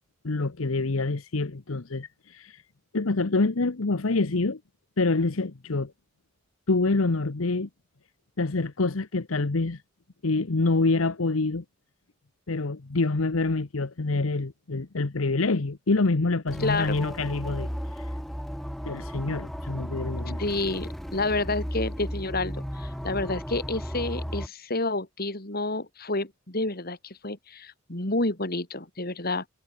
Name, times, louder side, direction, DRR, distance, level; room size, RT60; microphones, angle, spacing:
voice 1, 0.2-2.6 2.9-4.6 5.0-5.9 6.7-7.7 8.4-9.8 10.2-11.6 12.5-17.7 18.0-18.1 18.9-20.4, left 3 dB, 75° left, 1.0 m, -26 dB
sound 1, 16.5-24.5, equal, ahead, 1.7 m, -35 dB
voice 2, 16.6-17.0 20.4-29.5, left 2 dB, 45° left, 3.6 m, -29 dB
head